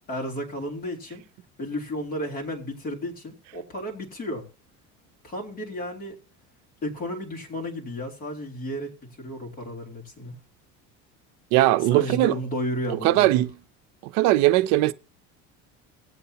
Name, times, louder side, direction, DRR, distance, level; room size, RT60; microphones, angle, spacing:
voice 1, 0.1-1.2 1.6-4.4 5.2-6.2 6.8-10.4 11.8-13.4, equal, 30° left, 2.8 m, -33 dB
voice 2, 11.5-12.4 13.0-13.5 14.0-14.9, right 16 dB, 65° right, 0.6 m, -19 dB
17.0 x 8.1 x 2.9 m
cardioid pair, 155°, 31 cm